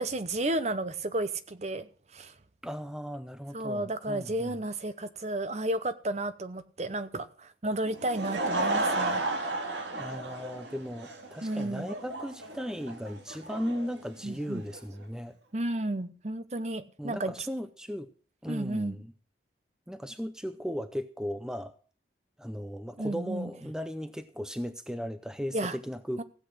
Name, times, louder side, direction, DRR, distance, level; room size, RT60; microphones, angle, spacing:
voice 1, 0.0-2.3 3.5-9.2 11.4-11.9 14.2-14.6 15.5-17.3 18.5-19.0 23.0-23.5 25.5-25.8 26.2-26.3, right 1 dB, 35° right, 0.8 m, -32 dB
voice 2, 2.6-4.5 9.9-15.3 17.0-18.1 18.4-19.1 19.9-21.7 22.4-26.2, equal, 5° right, 0.5 m, -36 dB
Laughter / Crowd, 7.9-14.8, right 2 dB, 75° right, 2.2 m, -33 dB
16.0 x 8.3 x 6.2 m
head